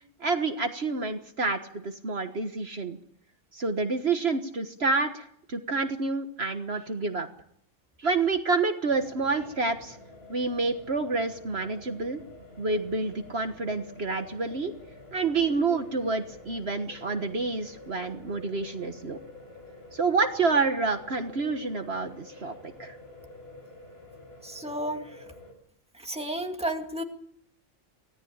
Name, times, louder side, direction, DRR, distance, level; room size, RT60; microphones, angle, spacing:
voice 1, 0.2-3.0 3.5-7.3 8.0-10.0 10.3-12.2 12.6-14.7 15.1-19.2 19.9-23.0, right 3 dB, 55° right, 7 dB, 1.7 m, -28 dB
sound 1, 8.9-25.5, left 2 dB, 50° left, 5.5 m, -48 dB
voice 2, 24.4-25.1 26.0-27.0, right 1 dB, 5° right, 4 dB, 2.2 m, -32 dB
24.5 x 17.5 x 8.8 m, 0.68 s
omnidirectional pair, 1.3 m